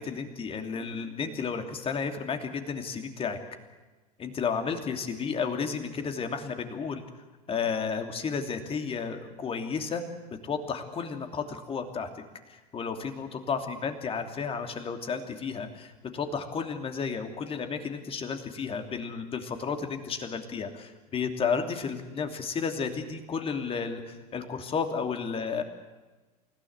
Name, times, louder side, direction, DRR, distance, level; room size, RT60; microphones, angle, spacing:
voice 1, 0.0-3.4 4.2-7.0 7.5-10.0 10.4-12.1 12.5-25.6, left 5 dB, 25° left, 6 dB, 2.9 m, -32 dB
28.5 x 16.5 x 8.1 m, 1.2 s
figure-of-eight pair, 75°, 20 cm